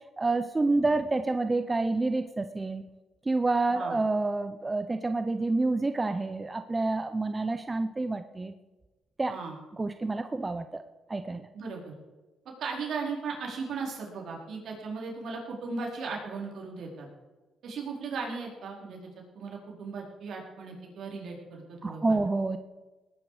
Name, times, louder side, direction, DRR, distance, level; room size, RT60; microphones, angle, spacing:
voice 1, 0.2-2.8 3.3-8.5 9.2-9.4 9.7-10.8 11.1-11.5 21.8-22.6, right 3 dB, 20° right, 9 dB, 0.7 m, -28 dB
voice 2, 11.5-11.9 12.4-17.1 17.6-19.1 19.3-22.2, right 4 dB, 65° right, -1 dB, 4.6 m, -37 dB
19.0 x 10.0 x 5.0 m, 1.2 s
cardioid pair, 90°, 0 cm